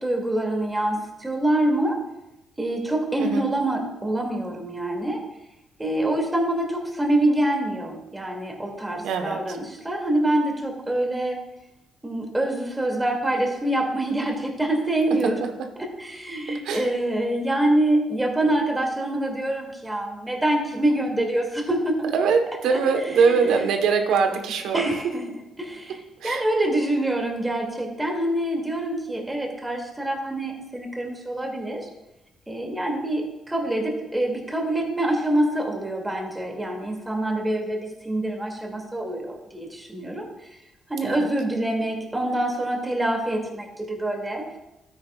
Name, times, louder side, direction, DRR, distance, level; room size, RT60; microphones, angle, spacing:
voice 1, 0.0-2.0 2.6-5.2 5.8-11.4 12.0-15.4 16.0-22.1 22.7-22.8 23.1-23.4 24.7-31.9 32.5-40.3 40.9-44.4, right 1 dB, 15° right, 0 dB, 2.5 m, -25 dB
voice 2, 9.0-9.6 16.6-16.9 22.1-24.8 26.2-26.4 41.0-41.3, right 5 dB, 85° right, 5 dB, 1.2 m, -22 dB
12.5 x 9.6 x 2.4 m, 0.94 s
cardioid pair, 90°, 0 cm